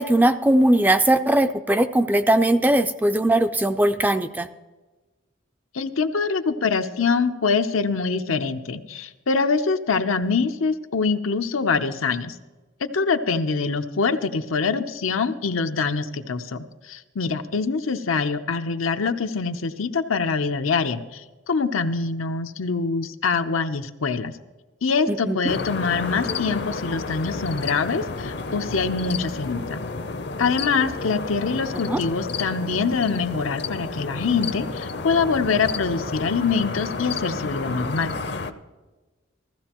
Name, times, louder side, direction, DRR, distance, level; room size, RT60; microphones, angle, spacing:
voice 1, 0.0-4.5 25.1-25.4 31.9-32.0, right 1 dB, 10° right, 10 dB, 0.3 m, -19 dB
voice 2, 5.7-12.4 12.9-24.3 24.8-29.8 30.4-38.1, left 4 dB, 90° left, 8 dB, 0.7 m, -24 dB
sound 1, 25.5-38.5, left 3 dB, 55° left, 0.6 m, -31 dB
15.5 x 14.5 x 3.0 m, 1.2 s
head